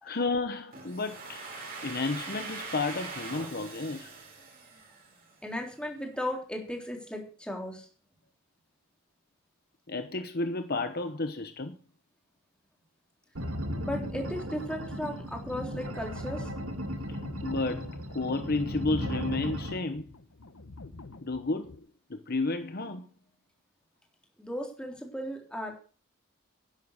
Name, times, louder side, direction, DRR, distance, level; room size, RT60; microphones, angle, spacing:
voice 1, 0.0-1.4 1.8-4.1 9.9-11.8 17.1-20.1 21.2-23.1, left 3 dB, 45° left, 0.9 m, -32 dB
Domestic sounds home sounds, 0.7-5.5, right 4 dB, 45° right, 5.0 m, -42 dB
voice 2, 5.4-7.9 13.8-16.5 24.4-25.7, left 1 dB, 5° left, 3.5 m, -36 dB
sound 1, 13.4-19.8, equal, 85° right, 2.2 m, -36 dB
sound 2, 14.6-21.8, left 2 dB, 80° left, 1.1 m, -48 dB
12.0 x 10.5 x 6.5 m
head